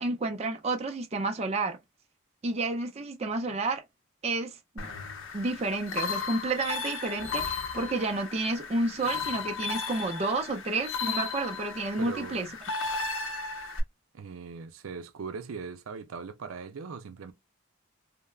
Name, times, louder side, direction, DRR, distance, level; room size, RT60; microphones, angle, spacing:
voice 1, 0.0-1.8 2.4-3.8 4.2-4.9 5.3-12.5, right 2 dB, 30° right, 0.4 m, -30 dB
sound 1, 4.8-13.8, left 4 dB, 75° left, 0.7 m, -35 dB
voice 2, 12.0-12.5 14.1-17.3, right 5 dB, 85° right, 0.5 m, -40 dB
3.2 x 2.1 x 2.3 m
head